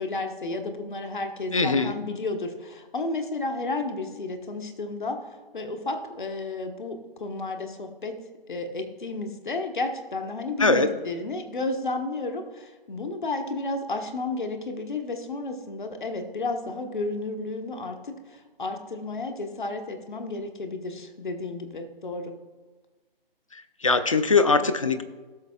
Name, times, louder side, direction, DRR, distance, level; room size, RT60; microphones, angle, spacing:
voice 1, 0.0-5.3 5.5-8.2 8.5-22.4, left 2 dB, 55° left, 5 dB, 1.2 m, -32 dB
voice 2, 1.5-1.9 10.6-10.9 23.8-25.0, left 4 dB, 35° left, 11 dB, 0.5 m, -21 dB
16.5 x 6.5 x 2.3 m, 1.3 s
figure-of-eight pair, 150°, 29 cm